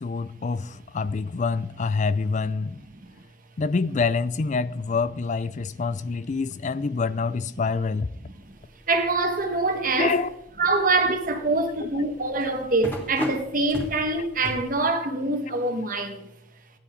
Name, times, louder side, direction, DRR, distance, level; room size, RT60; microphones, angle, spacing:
voice 1, 0.0-2.8 3.6-8.1 10.0-10.3, left 4 dB, 40° left, 0.4 m, -26 dB
sound 1, 8.4-14.7, equal, 10° left, 3.2 m, -37 dB
voice 2, 8.9-10.2 10.6-16.3, right 2 dB, 45° right, 1.7 m, -24 dB
16.0 x 11.0 x 3.9 m
head